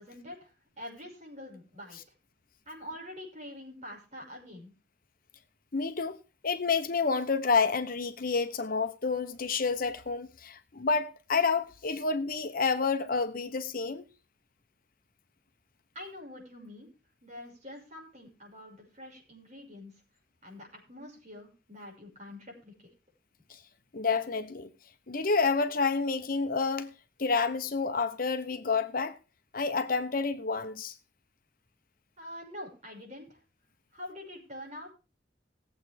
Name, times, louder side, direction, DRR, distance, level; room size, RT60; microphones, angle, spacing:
voice 1, 0.0-2.0 2.7-4.7 15.9-16.9 17.2-19.9 20.4-22.9 32.2-33.4 33.9-34.9, left 1 dB, 40° right, 6.1 m, -45 dB
voice 2, 5.7-6.2 6.4-14.0 23.9-24.7 25.1-26.9 27.2-29.2 29.5-30.9, left 4 dB, 50° left, 1.0 m, -29 dB
18.5 x 8.0 x 3.5 m
head